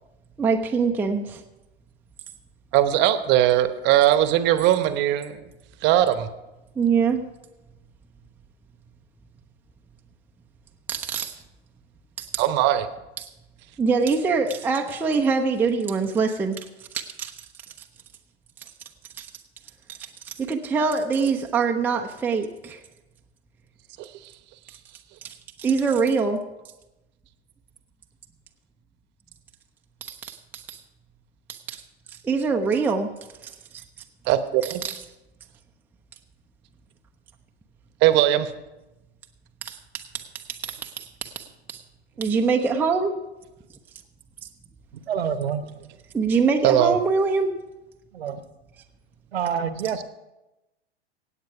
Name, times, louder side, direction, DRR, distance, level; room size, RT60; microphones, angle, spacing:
voice 1, 0.4-1.4 6.8-7.2 10.9-11.3 12.2-12.4 13.2-13.3 13.8-16.7 16.9-17.3 19.2-19.3 19.9-22.8 25.2-26.4 30.0-30.8 31.5-31.8 32.1-33.1 33.4-33.8 34.6-35.0 39.6-41.8 42.2-43.2 46.1-47.5, right 5 dB, 5° right, 0.5 m, -24 dB
voice 2, 2.7-5.4 5.8-6.3 12.4-12.9 24.0-24.1 34.3-34.8 38.0-38.5 46.6-47.0, right 12 dB, 30° right, 0.9 m, -20 dB
voice 3, 44.9-45.7 48.1-48.4 49.3-50.0, right 8 dB, 65° right, 1.0 m, -27 dB
17.0 x 8.2 x 4.7 m
figure-of-eight pair, 100°, 33 cm